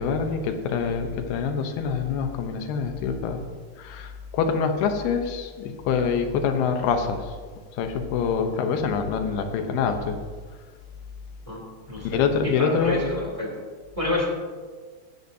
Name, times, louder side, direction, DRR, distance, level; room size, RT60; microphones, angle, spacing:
voice 1, 0.0-3.4 3.8-7.4 7.7-10.2 12.0-13.0, left 6 dB, 75° left, 6 dB, 2.7 m, -25 dB
voice 2, 11.9-13.6 13.9-14.2, left 2 dB, 10° right, -3 dB, 1.7 m, -29 dB
17.0 x 12.5 x 2.8 m, 1.5 s
omnidirectional pair, 4.9 m